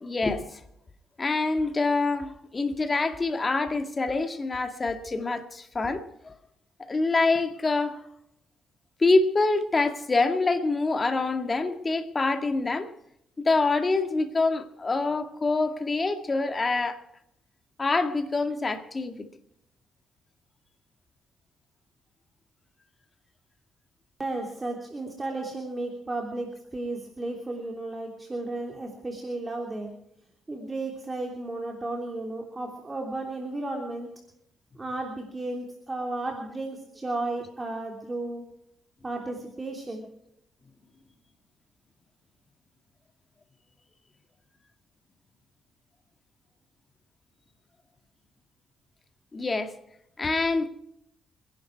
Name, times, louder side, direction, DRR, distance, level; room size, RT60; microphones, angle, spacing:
voice 1, 0.0-0.6 1.2-6.3 6.8-8.0 9.0-12.9 13.4-17.0 17.8-19.3 49.3-49.8 50.2-50.7, left 3 dB, 30° left, 2.1 m, -26 dB
voice 2, 24.2-29.9 30.5-34.1 34.8-38.4 39.0-40.0, right 2 dB, 20° right, 3.1 m, -34 dB
26.5 x 11.5 x 4.7 m
cardioid pair, 90°, 0 cm